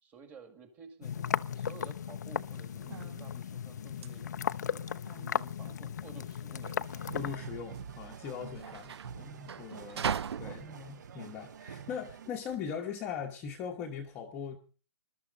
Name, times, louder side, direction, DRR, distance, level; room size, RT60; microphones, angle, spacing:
voice 1, 0.0-4.9 5.3-7.1 7.5-7.7, right 5 dB, 10° right, 7 dB, 2.1 m, -53 dB
sound 1, 1.0-7.4, left 8 dB, 35° left, 0.6 m, -36 dB
sound 2, 2.5-12.6, right 7 dB, 65° right, 0.6 m, -41 dB
sound 3, 6.8-12.3, right 7 dB, 40° right, 1.1 m, -46 dB
voice 2, 7.1-14.6, left 7 dB, 10° left, 1 dB, 1.1 m, -40 dB
21.0 x 13.0 x 4.0 m, 0.38 s
hypercardioid pair, 175°, 15 cm